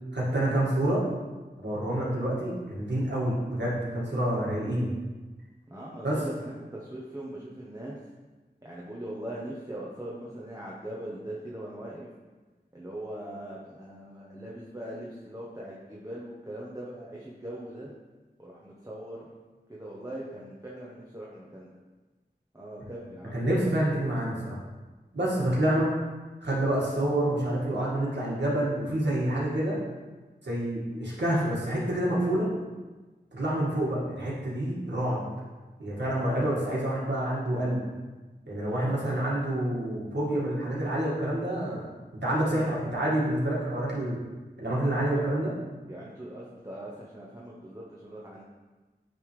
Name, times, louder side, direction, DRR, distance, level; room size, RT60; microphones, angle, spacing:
voice 1, 0.1-1.0 1.6-4.9 6.0-6.2 23.3-24.6 25.1-25.9 26.4-29.8 30.4-32.5 33.3-35.3 35.8-37.8 38.5-41.8 42.2-44.2 44.6-45.5, right 1 dB, 85° right, -7 dB, 1.8 m, -28 dB
voice 2, 5.7-8.0 8.6-12.1 12.7-17.9 18.4-19.3 19.7-21.7 22.5-23.7 38.6-39.4 45.1-45.2 45.9-48.4, right 1 dB, 20° right, -6 dB, 0.9 m, -40 dB
9.2 x 3.5 x 3.2 m, 1.3 s
wide cardioid pair, 50°, 18 cm